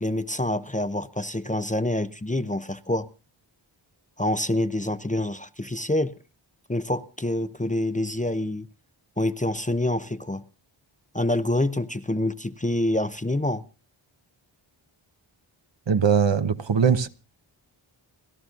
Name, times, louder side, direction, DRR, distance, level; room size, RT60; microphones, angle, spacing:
voice 1, 0.0-3.1 4.2-6.2 6.7-8.7 9.2-10.4 11.1-13.6, left 1 dB, 15° left, 0.6 m, -26 dB
voice 2, 15.9-17.1, right 7 dB, 60° right, 1.0 m, -21 dB
30.0 x 12.5 x 2.5 m
wide cardioid pair, 55°, 49 cm